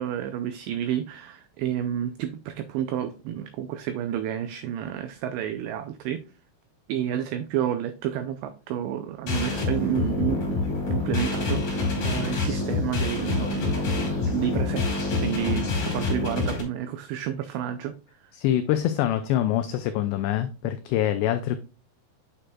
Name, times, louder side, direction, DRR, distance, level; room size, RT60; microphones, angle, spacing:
voice 1, 0.0-6.2 6.9-14.0 14.2-17.9, right 10 dB, 90° right, 2.4 m, -30 dB
sound 1, 9.3-16.6, left 3 dB, 45° left, 3.4 m, -26 dB
voice 2, 18.4-21.6, left 12 dB, 90° left, 2.4 m, -25 dB
8.8 x 6.5 x 2.3 m
omnidirectional pair, 5.5 m